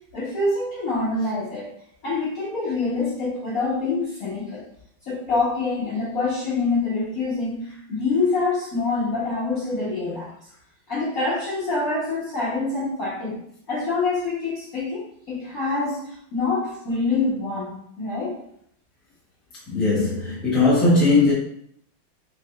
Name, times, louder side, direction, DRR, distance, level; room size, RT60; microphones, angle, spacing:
voice 1, 0.1-1.7 2.0-4.7 5.1-10.3 10.9-13.4 13.7-18.4, left 3 dB, 55° left, 1.1 m, -26 dB
voice 2, 19.7-21.3, left 3 dB, ahead, 0.9 m, -19 dB
4.7 x 3.1 x 2.2 m
omnidirectional pair, 2.3 m